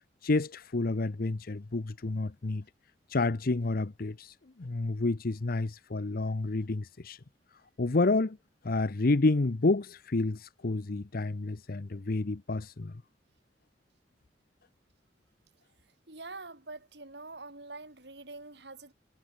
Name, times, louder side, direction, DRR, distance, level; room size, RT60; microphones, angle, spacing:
voice 1, 0.2-2.6 3.1-7.2 7.8-8.4 8.6-12.9, left 3 dB, 55° left, 0.8 m, -29 dB
voice 2, 16.1-18.9, right 3 dB, 70° right, 5.8 m, -45 dB
head